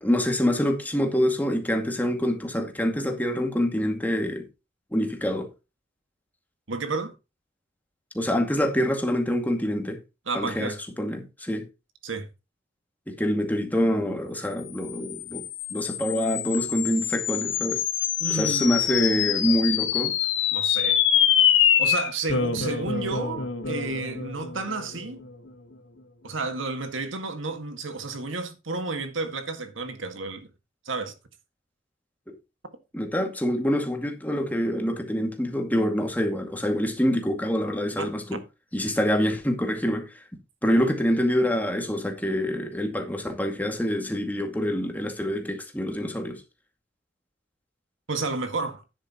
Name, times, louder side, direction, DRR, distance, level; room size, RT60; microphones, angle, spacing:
voice 1, 0.0-4.4 4.9-5.5 8.1-10.0 10.3-11.7 13.1-15.4 15.7-17.8 18.3-20.2 32.9-38.4 38.7-40.2 40.6-46.4, equal, 10° left, 2.2 m, -26 dB
voice 2, 6.7-7.1 10.3-10.8 12.0-12.3 18.2-18.7 20.5-21.0 21.8-25.2 26.2-30.5 30.9-31.1 38.0-38.1 48.1-48.8, right 3 dB, 85° right, 1.9 m, -31 dB
sound 1, 14.8-25.5, left 9 dB, 75° left, 1.5 m, -25 dB
12.0 x 10.0 x 3.0 m
head